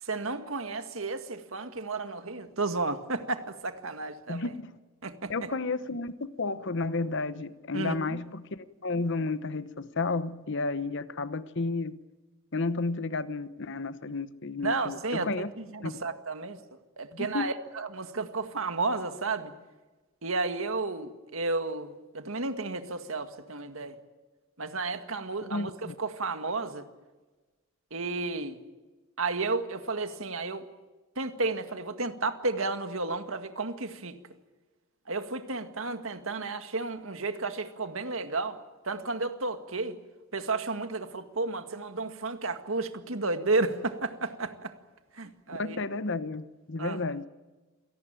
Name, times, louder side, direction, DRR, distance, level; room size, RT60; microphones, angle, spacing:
voice 1, 0.0-4.5 5.0-5.5 7.7-8.2 14.6-16.6 17.0-19.5 20.2-24.0 24.6-26.9 27.9-28.6 29.2-30.7 31.2-34.2 35.1-40.0 40.3-44.7 45.1-45.8 46.8-47.0, right 3 dB, 65° right, 8 dB, 2.0 m, -32 dB
voice 2, 4.3-4.7 5.3-12.0 12.5-15.5 15.8-15.9 17.1-17.5 25.5-25.9 45.5-47.3, left 3 dB, 55° left, 14 dB, 1.0 m, -32 dB
27.5 x 18.5 x 9.0 m, 1.2 s
head